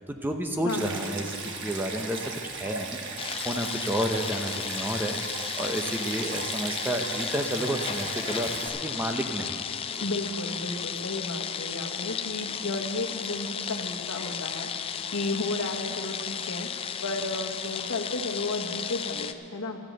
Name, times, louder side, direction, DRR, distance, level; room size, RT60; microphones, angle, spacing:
voice 1, 0.0-3.0 3.4-10.0, right 1 dB, 10° right, 4 dB, 0.7 m, -31 dB
voice 2, 0.6-1.0 10.0-19.8, left 2 dB, 80° left, 3 dB, 1.1 m, -33 dB
Stream, 0.7-8.7, right 4 dB, 55° right, 1.3 m, -37 dB
sound 1, 3.2-19.3, left 7 dB, 25° left, 0.3 m, -34 dB
13.5 x 8.1 x 7.6 m, 2.9 s
head